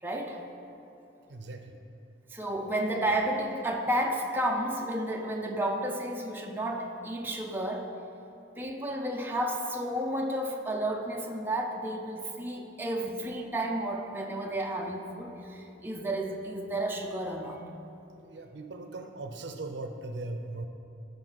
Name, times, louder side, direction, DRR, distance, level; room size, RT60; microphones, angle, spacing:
voice 1, 0.0-0.4 2.3-7.9 8.6-17.6, right 1 dB, 10° right, 0 dB, 0.6 m, -32 dB
voice 2, 1.3-1.8 18.2-20.7, right 2 dB, 70° right, 6 dB, 0.6 m, -39 dB
13.5 x 5.3 x 4.0 m, 2.8 s
head